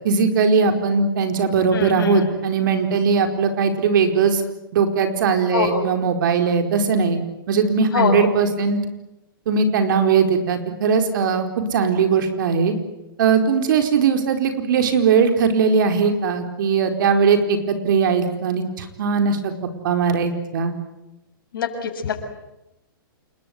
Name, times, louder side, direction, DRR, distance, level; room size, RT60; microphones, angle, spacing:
voice 1, 0.0-4.4 4.7-7.2 7.5-8.8 9.5-12.7 13.2-19.5 19.8-20.7, right 5 dB, 60° right, 6 dB, 4.6 m, -19 dB
voice 2, 1.7-2.3 5.5-5.9 7.9-8.3 21.5-22.3, left 6 dB, 70° left, 4 dB, 7.1 m, -24 dB
28.5 x 22.0 x 9.5 m, 0.93 s
hypercardioid pair, 125°, 12 cm